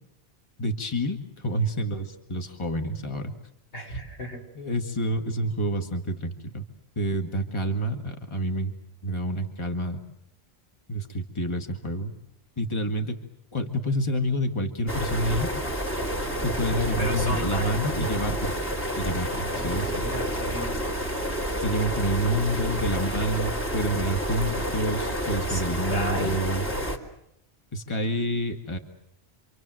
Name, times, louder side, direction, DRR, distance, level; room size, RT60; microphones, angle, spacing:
voice 1, 0.6-3.3 4.6-6.6 7.0-8.7 9.0-10.0 10.9-12.2 12.6-13.2 13.5-15.5 16.4-18.5 19.0-20.1 21.6-26.6 27.7-28.8, equal, 25° left, 5 dB, 2.0 m, -28 dB
voice 2, 3.7-4.5 17.0-17.8 19.3-20.8 21.4-21.8 25.5-26.4, equal, 90° left, 0 dB, 6.1 m, -34 dB
sound 1, 14.9-27.0, equal, 10° left, 3.4 m, -29 dB
27.5 x 26.0 x 7.8 m, 0.77 s
omnidirectional pair, 1.1 m